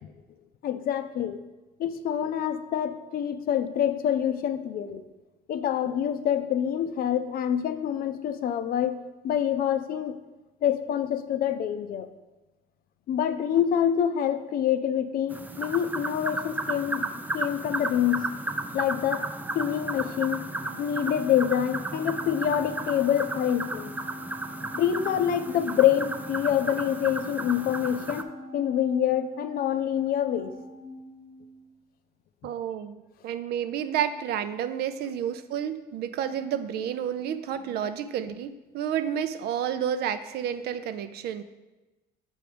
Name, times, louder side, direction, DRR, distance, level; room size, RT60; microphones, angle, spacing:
voice 1, 0.6-1.4 1.8-5.0 5.5-9.0 9.2-10.2 10.6-12.1 13.1-17.1 17.3-18.2 18.7-19.2 19.5-20.5 20.8-23.9 24.7-30.5, left 10 dB, 60° left, 11 dB, 0.5 m, -26 dB
sound 1, 15.3-28.2, right 2 dB, 10° right, 0.4 m, -34 dB
Organ, 20.5-31.7, left 1 dB, 40° right, 1.1 m, -44 dB
voice 2, 32.4-41.4, right 9 dB, 70° right, 11 dB, 0.5 m, -30 dB
7.2 x 4.6 x 5.0 m, 1.1 s
cardioid pair, 110°, 17 cm